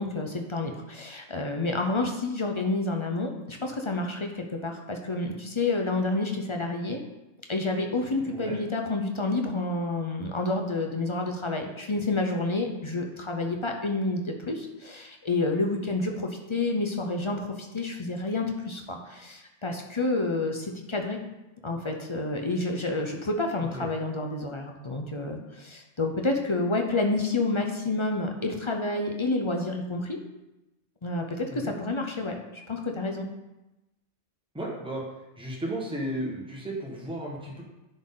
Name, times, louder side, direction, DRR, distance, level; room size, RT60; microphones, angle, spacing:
voice 1, 0.0-7.0 7.5-21.2 21.6-30.2 31.0-33.3, left 2 dB, 30° left, 3 dB, 0.6 m, -29 dB
voice 2, 8.2-8.6 23.7-23.9 31.5-31.7 34.5-35.0 35.4-37.6, right 1 dB, 5° right, -3 dB, 1.4 m, -34 dB
9.9 x 4.0 x 3.8 m, 0.99 s
omnidirectional pair, 1.3 m